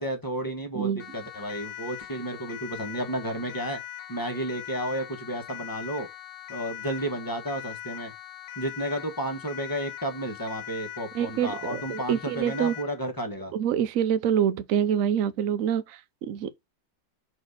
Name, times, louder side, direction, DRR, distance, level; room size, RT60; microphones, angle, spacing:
voice 1, 0.0-3.8 4.1-6.1 6.5-8.1 8.6-13.5, right 1 dB, 15° left, 1.1 m, -32 dB
Siren, 1.0-13.0, left 12 dB, 75° left, 1.4 m, -41 dB
voice 2, 11.1-12.7 13.5-16.5, right 9 dB, 60° right, 0.9 m, -26 dB
6.0 x 4.3 x 4.1 m
omnidirectional pair, 1.9 m